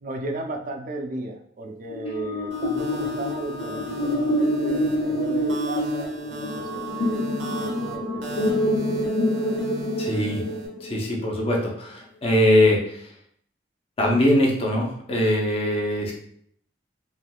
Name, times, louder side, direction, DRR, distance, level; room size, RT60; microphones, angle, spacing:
voice 1, 0.0-8.8, right 2 dB, 45° right, 3 dB, 0.4 m, -35 dB
sound 1, 1.9-11.3, left 1 dB, 75° left, 0.8 m, -26 dB
sound 2, 2.5-10.7, right 1 dB, 85° right, 0.8 m, -38 dB
voice 2, 10.0-10.4 10.8-13.1 14.0-16.1, left 1 dB, 30° left, -1 dB, 0.7 m, -22 dB
3.4 x 2.6 x 2.3 m, 0.66 s
head